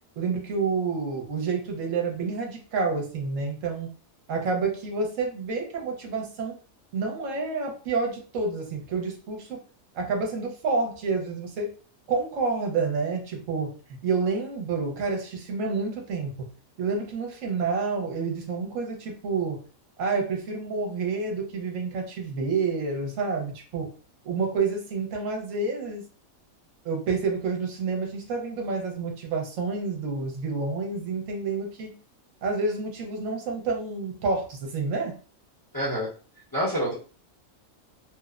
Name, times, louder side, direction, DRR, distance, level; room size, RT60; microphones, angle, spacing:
voice 1, 0.2-3.9 4.3-6.6 6.9-9.6 9.9-11.7 12.1-16.5 16.8-19.6 20.0-23.9 24.2-26.1 26.8-31.9 32.4-35.1, right 4 dB, 70° right, 1 dB, 1.0 m, -29 dB
voice 2, 35.7-36.1 36.5-36.9, equal, 20° left, -7 dB, 0.6 m, -26 dB
2.9 x 2.0 x 2.3 m, 0.38 s
omnidirectional pair, 1.4 m